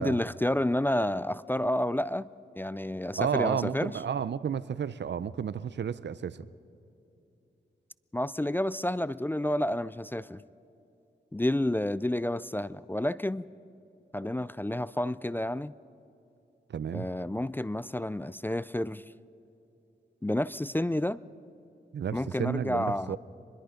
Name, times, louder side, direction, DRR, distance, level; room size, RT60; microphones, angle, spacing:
voice 1, 0.0-4.0 8.1-10.4 11.3-13.5 14.1-15.7 16.9-19.0 20.2-21.2 22.1-23.2, left 1 dB, 10° left, 18 dB, 0.4 m, -30 dB
voice 2, 3.2-6.5 16.7-17.1 21.9-23.2, right 8 dB, 70° right, 17 dB, 0.6 m, -32 dB
25.0 x 21.5 x 5.2 m, 2.8 s
cardioid pair, 70°, 19 cm